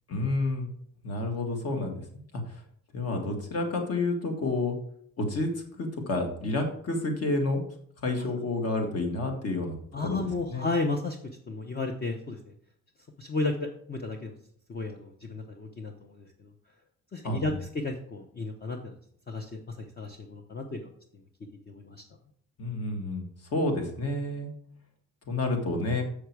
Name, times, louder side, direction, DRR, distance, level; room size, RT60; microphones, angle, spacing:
voice 1, 0.1-0.7 1.0-2.0 2.3-2.4 2.9-4.8 5.2-7.6 8.0-9.7 10.0-10.7 17.2-17.6 22.6-24.5 25.3-26.0, left 2 dB, 50° left, 3 dB, 2.0 m, -29 dB
voice 2, 9.9-11.2 11.5-12.4 13.2-14.4 14.7-16.2 17.1-18.9 19.3-20.9 21.7-22.0, left 3 dB, 30° left, 3 dB, 0.9 m, -33 dB
7.3 x 6.4 x 4.7 m, 0.63 s
cardioid pair, 135°, 32 cm